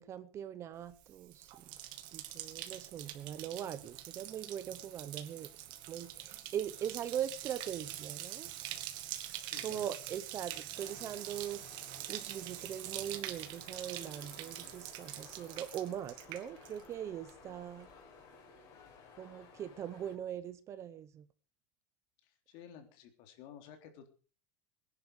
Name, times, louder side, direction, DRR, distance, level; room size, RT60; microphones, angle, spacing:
voice 1, 0.0-1.5 2.1-5.5 5.9-8.5 9.4-11.6 12.1-17.9 19.2-21.3, right 10 dB, 25° right, 0.8 m, -41 dB
Bathtub (filling or washing), 0.9-17.0 17.3-17.8, right 13 dB, 45° right, 2.0 m, -45 dB
voice 2, 9.4-9.9 22.2-24.1, left 9 dB, 55° left, 3.5 m, -53 dB
sound 1, 10.7-20.2, left 5 dB, 35° left, 5.1 m, -57 dB
21.5 x 11.0 x 5.0 m
cardioid pair, 175°, 10 cm